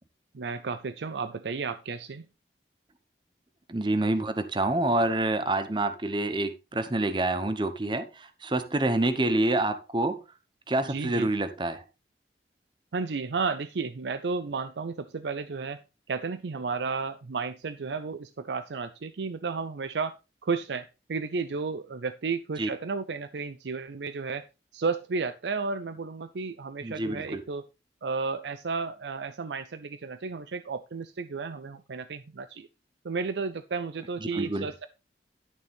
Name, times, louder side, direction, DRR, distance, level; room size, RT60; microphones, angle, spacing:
voice 1, 0.3-2.3 10.8-11.3 12.9-15.8 16.1-20.2 20.4-24.4 24.7-27.6 28.0-32.7 33.0-34.9, right 4 dB, 80° right, 11 dB, 0.5 m, -33 dB
voice 2, 3.7-10.2 10.7-11.8 22.6-22.7 26.8-27.4 34.3-34.7, right 2 dB, 25° right, 10 dB, 0.8 m, -27 dB
11.5 x 6.6 x 3.5 m, 0.28 s
head